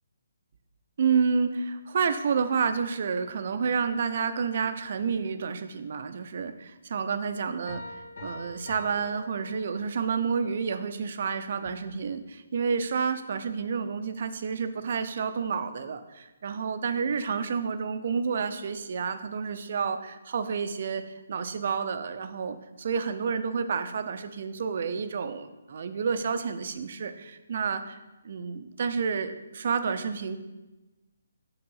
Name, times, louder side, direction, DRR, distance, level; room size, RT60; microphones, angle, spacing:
voice 1, 1.0-7.8 8.2-21.0 21.3-30.4, right 6 dB, 50° right, 10 dB, 0.5 m, -29 dB
Piano, 7.7-10.2, left 2 dB, 85° left, 2.3 m, -43 dB
6.8 x 3.7 x 5.5 m, 1.1 s
hypercardioid pair, 165°, 0 cm